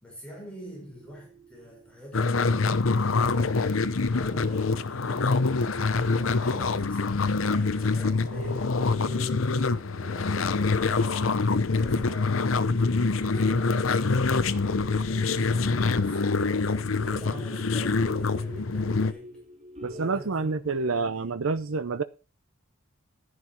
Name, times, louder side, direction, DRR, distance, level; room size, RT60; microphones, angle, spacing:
voice 1, 0.0-9.4 9.7-9.8 10.0-19.4 19.9-21.4, equal, 5° left, 5.4 m, -46 dB
sound 1, 0.9-4.9 5.3-5.4 6.5-6.6 7.1-7.2 7.7-7.9 8.1-20.2, left 1 dB, 35° right, 1.8 m, -46 dB
sound 2, 2.1-19.1, left 4 dB, 80° left, 0.8 m, -25 dB
voice 2, 19.8-22.0, right 4 dB, 90° right, 0.7 m, -28 dB
11.5 x 11.0 x 4.4 m
head